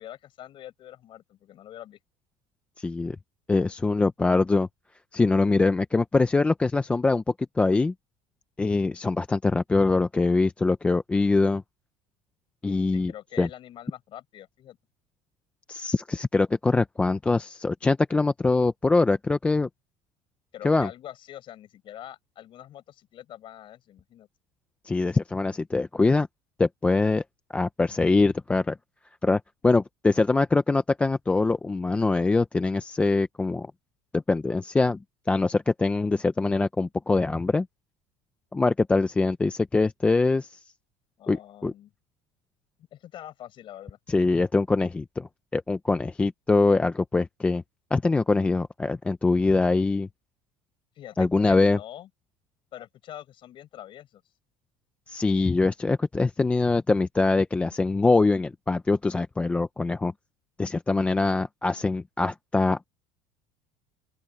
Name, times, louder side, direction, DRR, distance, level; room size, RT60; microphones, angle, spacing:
voice 1, 0.0-2.0 12.9-14.8 20.5-24.3 41.2-41.9 42.8-44.0 51.0-52.1 52.7-54.2, left 12 dB, 35° left, 7.5 m, -44 dB
voice 2, 2.8-3.2 3.5-4.7 5.1-7.2 7.6-7.9 8.6-11.6 12.6-13.1 13.4-13.5 15.7-19.7 20.6-20.9 24.8-26.3 26.6-27.2 27.5-28.8 29.2-33.7 34.1-35.0 35.3-37.7 38.5-40.5 41.3-41.4 41.6-41.7 44.1-47.6 47.9-50.1 51.2-51.8 55.1-60.1 60.6-62.9, left 3 dB, 10° left, 0.4 m, -23 dB
open air
cardioid pair, 180°, 14 cm